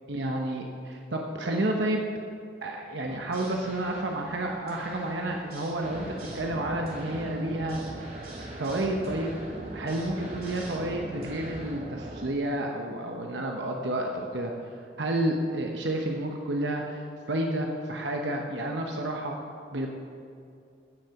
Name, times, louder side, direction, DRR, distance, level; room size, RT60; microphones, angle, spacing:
voice 1, 0.1-2.0 2.6-6.1 6.3-7.8 8.6-9.3 9.7-14.5 15.0-19.4 19.7-19.9, right 1 dB, 75° right, 1 dB, 1.0 m, -30 dB
sound 1, 3.0-11.8, right 1 dB, 50° right, 2.9 m, -46 dB
sound 2, 5.8-12.3, right 1 dB, 35° right, 0.8 m, -40 dB
15.5 x 6.6 x 5.9 m, 2.5 s
head